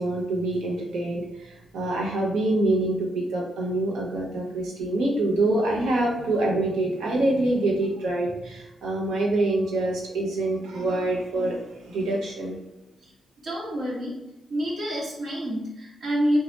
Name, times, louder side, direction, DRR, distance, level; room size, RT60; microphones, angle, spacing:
voice 1, 0.0-12.6, right 2 dB, 85° right, -2 dB, 0.7 m, -25 dB
voice 2, 13.4-14.2 14.5-16.4, equal, 65° right, -6 dB, 1.1 m, -27 dB
3.0 x 2.3 x 3.0 m, 0.93 s
supercardioid pair, 50°, 0 cm